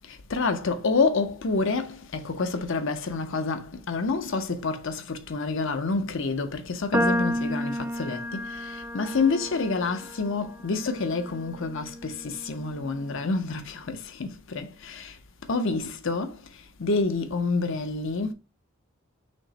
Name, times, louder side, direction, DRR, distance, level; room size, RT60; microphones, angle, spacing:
voice 1, 0.1-15.2 15.5-16.4 16.8-18.3, left 4 dB, 65° left, 0.7 m, -28 dB
sound 1, 6.9-13.3, equal, 10° right, 0.4 m, -32 dB
6.2 x 2.1 x 4.0 m
head